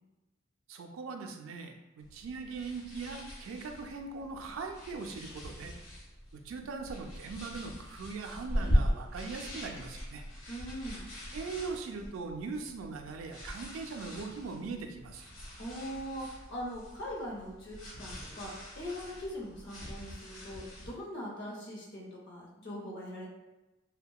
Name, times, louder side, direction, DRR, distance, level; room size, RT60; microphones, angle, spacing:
voice 1, 0.7-5.7 6.3-10.2 11.3-15.2, right 4 dB, 75° right, 4 dB, 0.3 m, -40 dB
sound 1, 2.0-20.9, equal, 85° left, 0.9 m, -39 dB
voice 2, 10.5-11.1 15.6-23.3, equal, 60° left, -4 dB, 0.7 m, -41 dB
2.7 x 2.1 x 2.2 m, 1.0 s
head